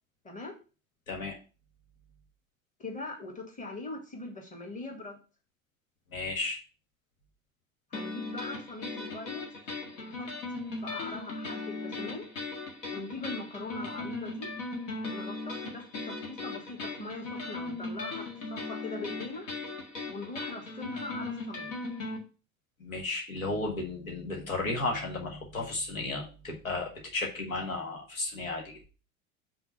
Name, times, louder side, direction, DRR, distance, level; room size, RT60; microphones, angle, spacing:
voice 1, 2.8-5.2 7.9-9.4 9.9-10.3 10.8-12.2 12.9-14.5 15.1-19.5 20.1-21.7, left 2 dB, 20° left, 2 dB, 1.9 m, -41 dB
voice 2, 6.1-6.6 22.8-28.8, left 2 dB, 80° left, 0 dB, 1.7 m, -34 dB
sound 1, 7.9-22.2, left 3 dB, 65° left, 1.9 m, -38 dB
5.8 x 3.7 x 5.5 m, 0.34 s
figure-of-eight pair, 75°, 40 cm